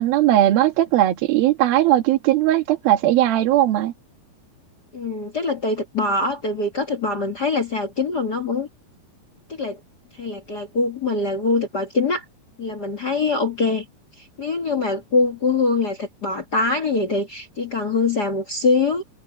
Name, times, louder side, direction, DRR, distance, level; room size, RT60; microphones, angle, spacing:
voice 1, 0.0-3.9, right 13 dB, 70° right, 3.4 m, -18 dB
voice 2, 4.9-8.7 9.5-9.8 10.1-12.2 12.6-13.8 14.2-19.0, left 3 dB, 45° left, 1.3 m, -23 dB
omnidirectional pair, 4.5 m